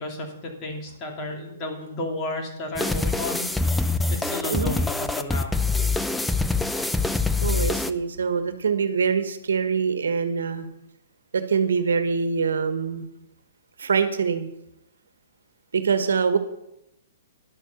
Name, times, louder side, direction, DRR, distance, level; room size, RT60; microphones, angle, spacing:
voice 1, 0.0-3.5 3.9-5.6, left 2 dB, 30° left, 2 dB, 2.7 m, -33 dB
sound 1, 2.8-7.9, left 3 dB, 5° left, 0.5 m, -24 dB
voice 2, 7.4-10.7 11.3-13.1 13.8-14.5 15.7-16.4, right 6 dB, 85° right, 10 dB, 1.3 m, -24 dB
11.0 x 6.6 x 7.0 m, 0.84 s
hypercardioid pair, 140°, 0 cm